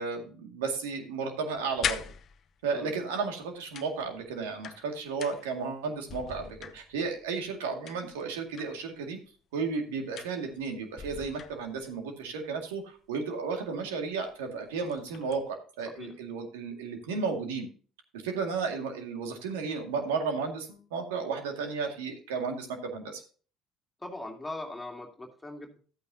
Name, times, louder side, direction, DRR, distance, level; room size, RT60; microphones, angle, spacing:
voice 1, 0.0-2.0 2.6-9.2 9.5-17.7 18.2-22.7 22.9-23.2, right 5 dB, 80° right, 4 dB, 2.0 m, -33 dB
sound 1, 1.5-2.8 3.7-5.7 6.0-7.2 7.9-8.9 10.2-10.7 11.0-12.0 13.6-13.7 14.1-14.3 14.7-15.5, left 8 dB, 50° left, 0.8 m, -40 dB
voice 2, 24.0-25.8, left 2 dB, 15° left, 2 dB, 2.3 m, -40 dB
12.5 x 8.7 x 2.7 m, 0.39 s
hypercardioid pair, 65°, 0 cm